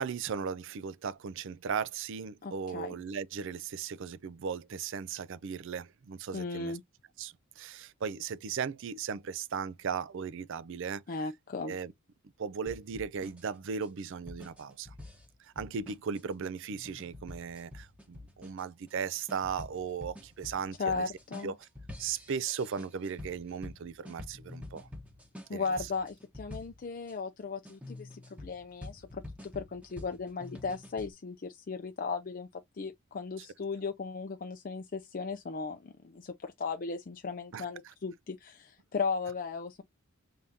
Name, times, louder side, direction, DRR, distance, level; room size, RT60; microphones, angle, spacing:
voice 1, 0.0-6.8 7.2-11.0 11.6-11.9 12.4-14.9 15.4-21.0 21.4-21.7 22.0-24.9 25.5-25.9 33.4-33.5 37.5-37.6, right 6 dB, 60° right, 0.4 m, -37 dB
voice 2, 2.4-2.9 6.3-6.8 11.1-11.7 20.8-21.5 25.5-32.5 32.7-39.8, left 4 dB, 40° left, 0.4 m, -36 dB
sound 1, 12.7-27.1 27.6-31.1, left 1 dB, 5° right, 1.1 m, -48 dB
3.7 x 3.6 x 2.7 m
head